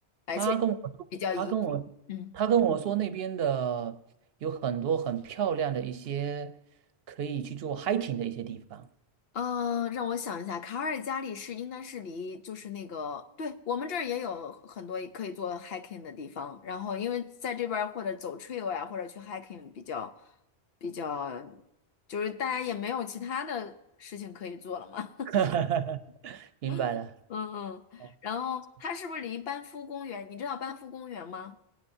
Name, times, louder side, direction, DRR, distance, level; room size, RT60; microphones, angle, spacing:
voice 1, 0.4-0.7 1.4-1.8 2.3-4.0 4.4-6.6 7.1-8.9 25.3-26.0 26.2-27.1 28.0-28.1, right 8 dB, 70° right, 0.8 m, -29 dB
voice 2, 1.2-1.5 2.1-2.4 9.3-20.2 20.8-21.6 22.1-23.7 24.0-25.3 26.7-26.9 27.3-31.6, left 7 dB, 70° left, 0.9 m, -35 dB
24.0 x 9.0 x 2.6 m
omnidirectional pair, 1.1 m